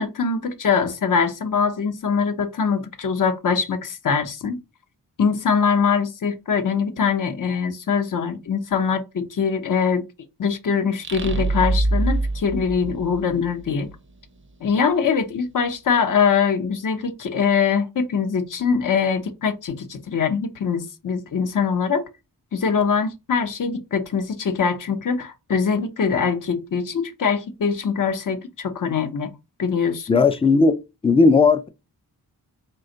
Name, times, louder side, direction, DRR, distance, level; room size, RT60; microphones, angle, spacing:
voice 1, 0.0-4.6 5.2-10.0 10.4-13.9 14.6-22.1 22.5-29.3 29.6-30.1, left 6 dB, 55° left, 0.7 m, -23 dB
sound 1, 11.0-13.7, right 2 dB, 30° right, 0.5 m, -24 dB
voice 2, 30.1-30.8 31.0-31.7, left 4 dB, 15° left, 0.3 m, -16 dB
4.3 x 2.2 x 3.7 m
wide cardioid pair, 105°, 38 cm